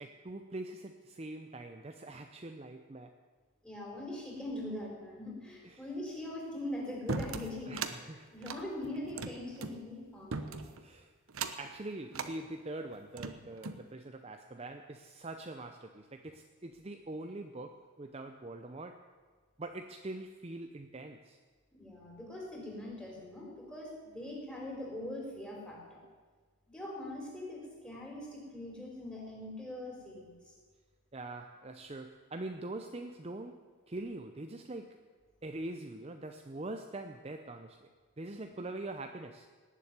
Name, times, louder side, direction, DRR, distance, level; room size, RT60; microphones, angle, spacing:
voice 1, 0.0-3.1 5.6-5.8 7.7-8.3 10.8-11.1 11.6-19.0 19.6-21.4 31.1-35.0 35.4-37.9 38.2-39.5, right 2 dB, 25° right, 6 dB, 0.6 m, -43 dB
voice 2, 3.6-7.8 8.3-10.6 21.7-25.8 26.7-30.5, left 1 dB, 5° left, -3 dB, 4.0 m, -42 dB
sound 1, 7.1-8.0 8.4-9.8 10.3-10.8 11.3-11.7 12.1-12.3 12.9-13.8, right 4 dB, 70° right, 1.0 m, -38 dB
18.0 x 7.6 x 9.7 m, 1.5 s
head